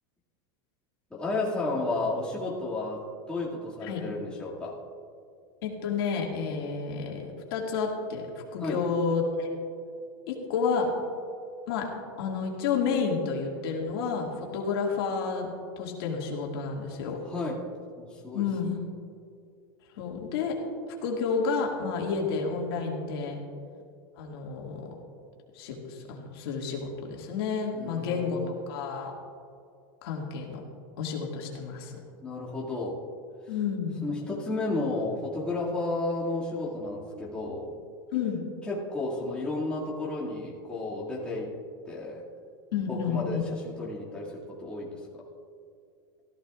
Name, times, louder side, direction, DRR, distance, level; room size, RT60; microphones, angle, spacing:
voice 1, 1.1-4.8 8.6-8.8 17.2-17.6 18.0-18.4 27.7-28.4 32.2-33.0 34.0-37.7 38.7-41.5 41.9-42.2 42.9-45.0, left 2 dB, 10° left, -7 dB, 2.3 m, -32 dB
voice 2, 5.6-8.3 8.5-9.5 10.3-10.9 11.7-11.9 12.2-17.2 18.3-18.8 19.9-20.6 21.0-23.4 24.2-24.9 25.5-28.4 28.7-29.1 30.0-30.6 31.0-32.0 33.5-34.0 38.1-38.4 42.7-43.5, left 5 dB, 75° left, -1 dB, 2.2 m, -30 dB
16.5 x 13.5 x 2.5 m, 2.4 s
supercardioid pair, 145°, 13 cm